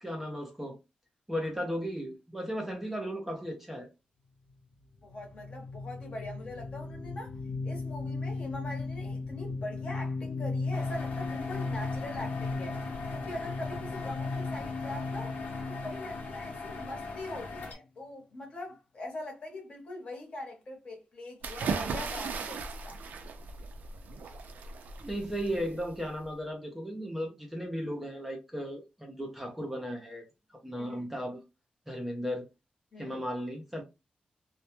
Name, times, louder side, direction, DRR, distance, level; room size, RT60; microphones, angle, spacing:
voice 1, 0.0-0.8 1.3-3.9 25.0-30.3 30.6-31.4 31.9-32.5 33.0-33.8, equal, 5° right, 0.4 m, -35 dB
voice 2, 5.0-7.3 7.6-12.8 13.1-15.3 15.7-23.0 30.8-31.0 32.9-33.2, left 1 dB, 40° left, 0.8 m, -42 dB
sound 1, 5.1-17.5, left 3 dB, 60° left, 0.4 m, -36 dB
sound 2, 10.7-17.7, left 3 dB, 75° left, 0.8 m, -41 dB
sound 3, 21.4-26.2, right 4 dB, 90° right, 0.4 m, -37 dB
2.1 x 2.0 x 2.9 m
wide cardioid pair, 170°, 3 cm